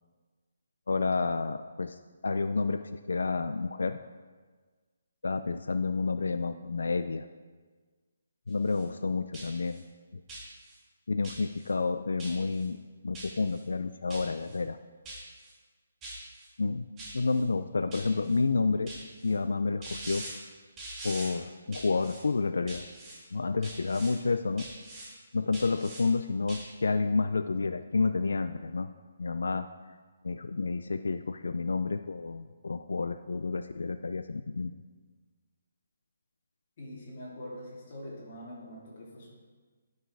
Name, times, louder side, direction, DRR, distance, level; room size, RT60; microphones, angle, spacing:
voice 1, 0.9-2.0 2.2-4.0 5.2-7.3 8.5-9.8 10.1-10.2 11.1-12.8 13.0-14.8 16.6-16.9 17.1-18.9 19.2-20.2 21.0-22.8 23.3-24.7 25.3-28.9 29.2-29.7 30.2-34.7, left 4 dB, 90° left, 10 dB, 0.4 m, -30 dB
sound 1, 8.5-8.9 9.3-9.8 10.3-10.8 11.2-11.7 12.2-12.7 13.1-13.6 14.1-14.6 15.1-15.5 16.0-16.5 17.0-17.4 17.9-18.4 18.9-19.3 19.8-20.3 20.8-21.3 21.7-22.2 22.7-23.2 23.6-24.1 24.6-25.1 25.5-26.0 26.5-26.6, right 2 dB, 10° right, 2.0 m, -43 dB
voice 2, 36.8-39.3, equal, 30° left, -6 dB, 3.4 m, -44 dB
11.5 x 6.5 x 4.7 m, 1.4 s
hypercardioid pair, 175°, 0 cm